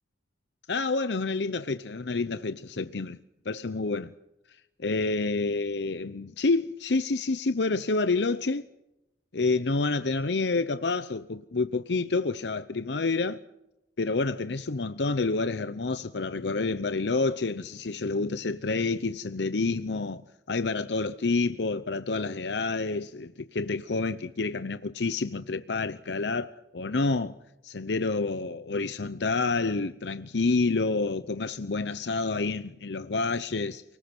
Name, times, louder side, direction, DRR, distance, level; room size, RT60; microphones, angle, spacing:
voice 1, 0.7-3.2 3.5-4.1 4.8-8.6 9.3-13.4 14.0-20.2 20.5-27.4 27.6-33.8, left 3 dB, 80° left, 0.8 m, -28 dB
29.5 x 19.5 x 6.1 m
head